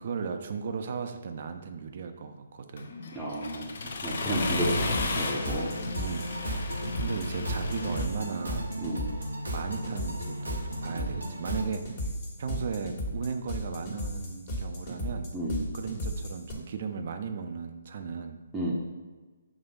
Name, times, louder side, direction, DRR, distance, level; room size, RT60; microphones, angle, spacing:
voice 1, 0.0-3.0 5.9-6.7 7.0-8.7 9.5-12.1 12.4-15.3 15.7-18.4, right 5 dB, 50° right, 7 dB, 0.6 m, -36 dB
Accelerating revving vroom, 2.8-8.0, left 3 dB, 60° left, 0.8 m, -33 dB
voice 2, 3.1-3.6 4.0-5.7 8.8-9.0 15.3-15.6 18.5-18.7, right 1 dB, 10° right, -5 dB, 0.8 m, -31 dB
sound 1, 4.5-11.6, right 1 dB, 85° right, 0.9 m, -38 dB
sound 2, 4.7-16.5, equal, 40° left, 1.6 m, -35 dB
6.0 x 3.1 x 5.2 m, 1.3 s
figure-of-eight pair, 140°, 0 cm